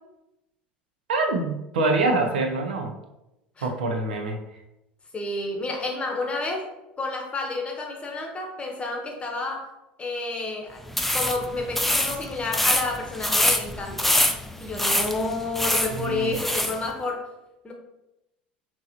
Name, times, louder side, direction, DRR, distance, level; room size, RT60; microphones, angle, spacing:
voice 1, 1.1-2.9 3.6-4.4 15.9-16.4, right 3 dB, 75° right, 4 dB, 0.6 m, -25 dB
voice 2, 5.1-6.7 7.0-9.7 10.0-10.8 11.1-14.1 14.6-17.2 17.6-17.7, left 2 dB, 20° left, 1 dB, 1.0 m, -30 dB
sound 1, 10.9-16.8, left 1 dB, 5° left, 0.4 m, -25 dB
5.4 x 2.9 x 2.9 m, 0.92 s
figure-of-eight pair, 75°, 5 cm